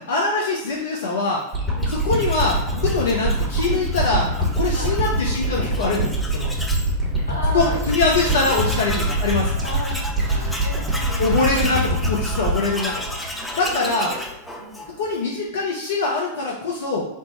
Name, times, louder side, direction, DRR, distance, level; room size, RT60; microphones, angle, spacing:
voice 1, 0.0-1.4 1.9-6.5 7.5-9.5 11.2-12.9 13.6-14.1 15.0-17.0, left 3 dB, 60° left, -3 dB, 0.6 m, -23 dB
sound 1, 1.5-13.9 14.3-14.4, right 1 dB, 15° right, 1.1 m, -24 dB
voice 2, 1.7-2.0 4.7-5.0 7.3-7.9 8.2-8.4 9.6-11.9 13.6-14.2 14.5-14.9, equal, 85° right, -4 dB, 1.2 m, -35 dB
Tools, 1.8-6.9 7.3-7.4 7.6-15.2, left 1 dB, 5° left, 0.5 m, -34 dB
3.5 x 2.0 x 4.2 m, 0.86 s
figure-of-eight pair, 90°, 0 cm